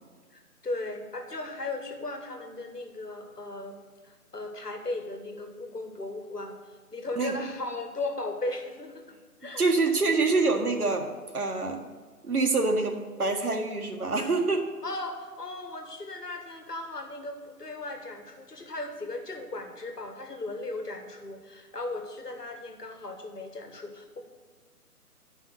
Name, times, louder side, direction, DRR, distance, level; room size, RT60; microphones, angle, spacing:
voice 1, 0.3-3.8 4.0-6.6 6.9-9.6 14.8-24.2, left 2 dB, 80° left, 4 dB, 1.7 m, -37 dB
voice 2, 9.6-11.1 11.3-11.8 12.2-14.7, right 3 dB, 70° right, 3 dB, 1.6 m, -26 dB
10.0 x 5.6 x 6.1 m, 1.4 s
figure-of-eight pair, 150°, 46 cm